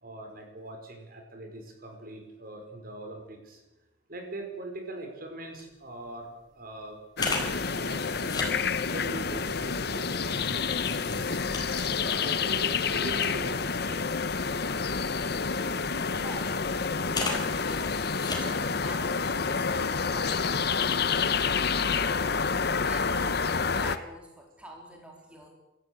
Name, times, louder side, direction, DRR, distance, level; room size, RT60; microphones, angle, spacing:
voice 1, 0.0-3.6 4.1-6.3 6.6-7.0 7.8-8.0 8.4-11.4 11.9-14.0 18.7-18.8, right 1 dB, 50° right, 3 dB, 5.2 m, -41 dB
sound 1, 5.6-5.7 6.1-6.2 7.2-8.5 9.3-13.8 14.2-15.5 16.1-16.5 17.1-18.7 19.0-19.2, left 3 dB, 20° left, 4.5 m, -37 dB
sound 2, 7.2-24.0, left 5 dB, 60° left, 1.1 m, -28 dB
voice 2, 16.1-16.6 17.2-20.8 21.5-25.5, right 1 dB, 5° right, 0 dB, 4.0 m, -47 dB
27.0 x 14.0 x 8.1 m, 0.97 s
head